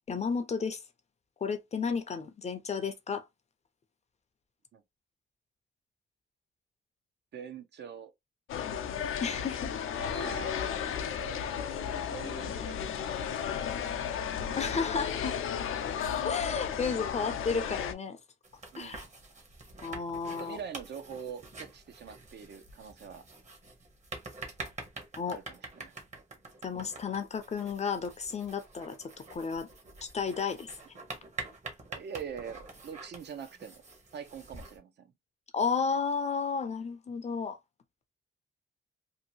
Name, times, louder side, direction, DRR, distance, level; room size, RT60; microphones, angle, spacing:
voice 1, 0.1-0.8 1.4-3.3 9.2-9.7 14.5-15.4 16.0-18.2 18.8-19.0 19.8-20.6 25.2-25.4 26.6-29.7 30.0-30.7 35.5-37.6, left 5 dB, 35° left, 0.5 m, -33 dB
voice 2, 7.3-8.1 10.0-14.3 18.7-19.0 20.2-23.2 25.3-25.9 31.9-33.8 34.1-35.1, right 7 dB, 60° right, 0.5 m, -44 dB
sound 1, 8.5-17.9, left 8 dB, 85° left, 0.5 m, -34 dB
sound 2, 18.4-34.8, right 3 dB, 35° right, 0.9 m, -46 dB
2.7 x 2.5 x 2.7 m
wide cardioid pair, 165°, 21 cm